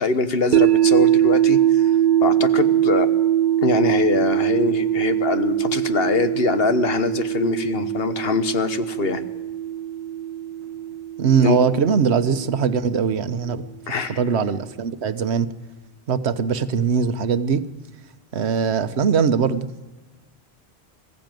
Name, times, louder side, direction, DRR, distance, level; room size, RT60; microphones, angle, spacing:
voice 1, 0.0-1.6 2.2-3.1 3.6-9.2 11.4-11.6 13.9-14.2, left 4 dB, 65° left, 11 dB, 1.3 m, -23 dB
sound 1, 0.5-12.6, right 11 dB, 50° right, 0.9 m, -21 dB
voice 2, 11.2-13.6 14.2-15.5 16.1-17.6 18.3-19.7, right 6 dB, 80° right, 12 dB, 1.2 m, -21 dB
21.0 x 14.5 x 9.1 m, 1.2 s
omnidirectional pair, 1.1 m